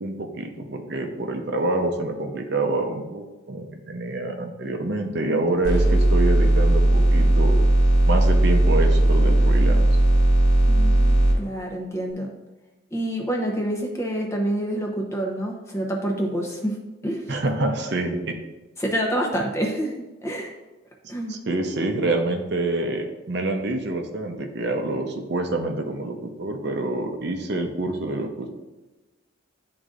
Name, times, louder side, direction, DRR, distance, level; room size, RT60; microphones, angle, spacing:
voice 1, 0.0-7.6 8.1-10.0 17.3-18.3 21.3-28.5, right 2 dB, 55° right, 4 dB, 0.7 m, -27 dB
sound 1, 5.6-11.3, right 1 dB, 75° left, 1.7 m, -17 dB
voice 2, 10.7-12.3 12.9-16.8 17.0-17.3 18.8-19.9 20.2-20.5 21.1-21.4, right 1 dB, 15° left, 1 dB, 0.8 m, -27 dB
11.0 x 3.8 x 2.5 m, 1.1 s
head